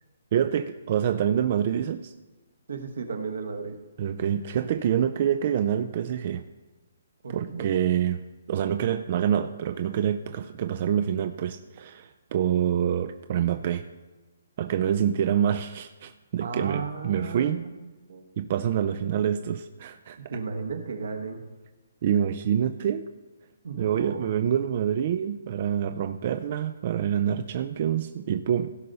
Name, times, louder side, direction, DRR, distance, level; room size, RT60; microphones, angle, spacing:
voice 1, 0.3-2.1 4.0-6.4 7.3-13.9 14.6-17.7 18.4-20.2 22.0-23.0 23.8-28.7, right 9 dB, 40° right, 9 dB, 0.4 m, -26 dB
voice 2, 2.7-3.8 7.2-7.7 16.4-17.7 18.1-18.2 20.3-21.4 23.6-24.3, right 4 dB, 75° right, 5 dB, 1.3 m, -34 dB
16.5 x 5.5 x 4.0 m, 1.2 s
hypercardioid pair, 160°, 0 cm